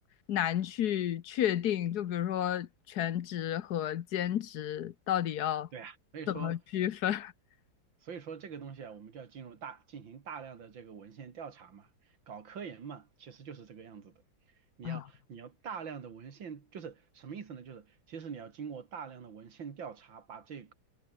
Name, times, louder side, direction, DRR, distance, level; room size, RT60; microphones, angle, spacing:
voice 1, 0.3-5.7 6.3-7.3 14.8-15.0, left 11 dB, 60° left, 1.3 m, -32 dB
voice 2, 5.7-6.6 8.0-11.9 12.3-14.2 14.8-20.7, right 6 dB, 75° right, 2.9 m, -44 dB
omnidirectional pair, 2.1 m